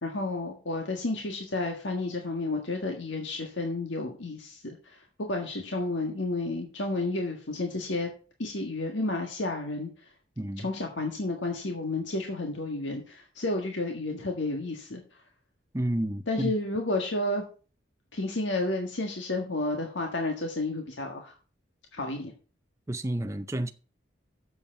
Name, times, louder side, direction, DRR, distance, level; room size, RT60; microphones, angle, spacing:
voice 1, 0.0-5.0 5.3-8.1 8.4-10.1 10.6-15.2 16.3-17.5 18.1-21.4 21.9-22.3, left 2 dB, 75° left, 1.6 m, -31 dB
voice 2, 10.4-10.7 15.7-16.5 22.9-23.7, right 1 dB, 15° right, 0.5 m, -30 dB
7.7 x 7.0 x 6.7 m
head